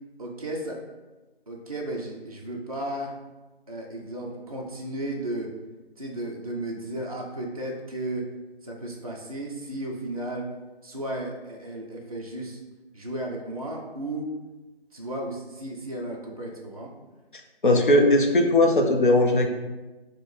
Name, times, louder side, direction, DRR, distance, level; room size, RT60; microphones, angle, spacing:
voice 1, 0.2-0.8 1.5-3.1 3.7-5.5 6.0-8.3 8.6-10.5 10.8-12.6 12.9-14.3 14.9-16.9, right 1 dB, 40° right, -1 dB, 0.4 m, -34 dB
voice 2, 17.6-19.5, left 1 dB, 55° left, 4 dB, 0.5 m, -19 dB
4.3 x 2.1 x 3.3 m, 1.1 s
figure-of-eight pair, 160°, 31 cm